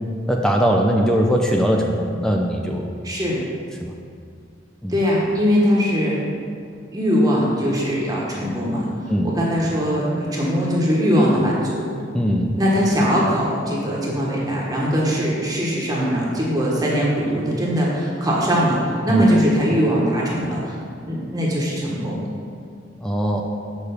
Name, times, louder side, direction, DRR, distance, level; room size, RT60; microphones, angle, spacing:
voice 1, 0.3-2.9 3.8-3.9 4.8-4.9 9.1-9.3 12.1-12.6 19.1-19.2 23.0-23.4, equal, 5° left, 0 dB, 0.5 m, -20 dB
voice 2, 3.0-3.4 4.9-6.2 6.9-8.9 9.2-11.9 12.6-20.8 21.1-22.2, equal, 20° right, -5 dB, 1.2 m, -21 dB
6.9 x 4.8 x 6.9 m, 2.3 s
head